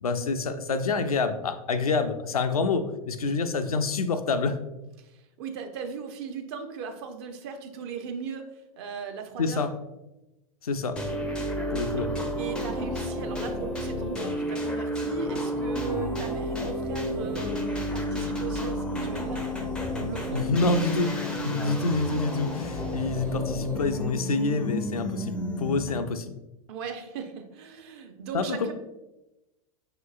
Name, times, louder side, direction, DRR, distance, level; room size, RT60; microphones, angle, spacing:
voice 1, 0.0-4.6 9.4-9.7 10.6-11.0 11.7-12.1 20.3-26.3 28.3-28.7, left 3 dB, 75° left, 9 dB, 0.4 m, -27 dB
voice 2, 5.0-8.5 8.8-9.6 11.8-12.1 12.3-19.5 20.0-20.8 26.7-28.7, right 6 dB, 45° right, 6 dB, 0.6 m, -38 dB
sound 1, 11.0-26.1, equal, 5° left, 0.4 m, -31 dB
5.7 x 2.9 x 2.4 m, 0.97 s
figure-of-eight pair, 90°, 19 cm